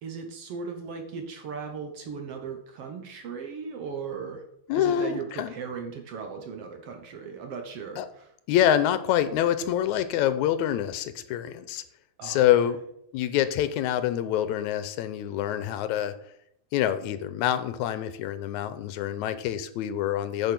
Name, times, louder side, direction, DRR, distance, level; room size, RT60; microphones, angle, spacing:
voice 1, 0.0-4.4 4.7-8.3 12.2-12.5, right 5 dB, 60° right, 4 dB, 1.8 m, -37 dB
voice 2, 4.7-5.5 8.0-8.1 8.5-11.8 12.2-12.8 13.1-16.1 16.7-20.5, left 11 dB, 85° left, 12 dB, 2.1 m, -26 dB
9.2 x 5.4 x 5.9 m, 0.72 s
omnidirectional pair, 3.3 m